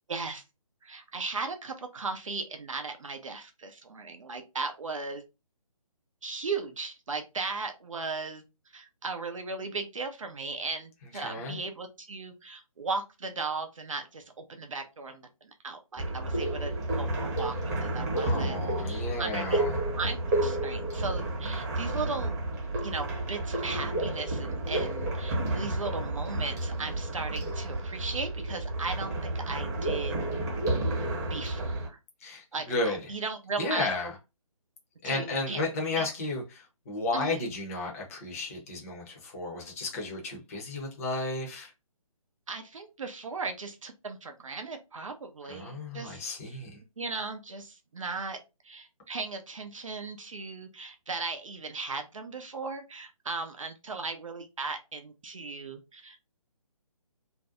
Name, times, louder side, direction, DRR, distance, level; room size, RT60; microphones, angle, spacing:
voice 1, 0.1-0.4 0.8-5.2 6.2-8.4 8.7-19.6 20.0-22.4 22.8-30.2 31.3-32.0 32.5-33.9 35.0-35.6 36.0-36.1 37.1-37.4 42.5-46.6 47.0-48.4 48.6-56.2, right 4 dB, 60° right, 0.5 m, -37 dB
voice 2, 11.1-11.6 18.2-19.7 32.2-33.0 33.6-34.1 35.0-41.7 45.5-46.8, left 2 dB, 25° left, 0.7 m, -33 dB
sound 1, 16.0-31.9, right 1 dB, 30° right, 1.0 m, -31 dB
2.5 x 2.1 x 2.6 m
figure-of-eight pair, 145°, 19 cm